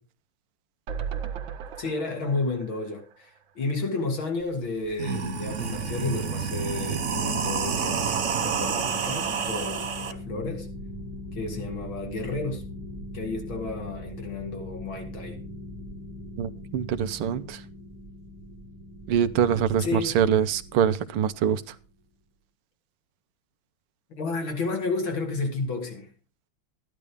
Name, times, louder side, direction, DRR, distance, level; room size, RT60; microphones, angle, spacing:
sound 1, 0.9-4.1 4.5-4.6 4.8-4.9, right 7 dB, 65° right, 1.9 m, -37 dB
voice 1, 1.8-10.7 11.3-12.6 13.1-15.4 19.8-20.1 24.1-26.1, left 3 dB, 65° left, 3.5 m, -31 dB
sound 2, 4.4-4.5 4.9-10.1, right 6 dB, 45° right, 1.0 m, -29 dB
sound 3, 5.6-21.9, left 2 dB, 20° right, 1.2 m, -41 dB
voice 2, 16.4-17.6 19.1-21.8, right 8 dB, 85° right, 1.8 m, -24 dB
13.5 x 11.0 x 3.5 m
omnidirectional pair, 2.4 m